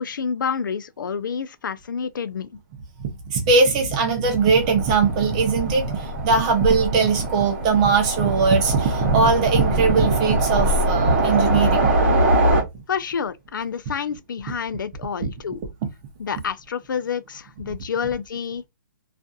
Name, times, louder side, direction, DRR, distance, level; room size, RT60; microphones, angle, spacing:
voice 1, 0.0-2.5 12.9-15.6 16.2-18.6, left 6 dB, 75° left, 0.4 m, -28 dB
voice 2, 3.3-11.9 15.2-15.3, right 4 dB, 20° right, 0.6 m, -20 dB
Train, 4.4-12.6, right 1 dB, 35° right, 1.0 m, -23 dB
2.6 x 2.4 x 2.3 m
hypercardioid pair, 170°, 11 cm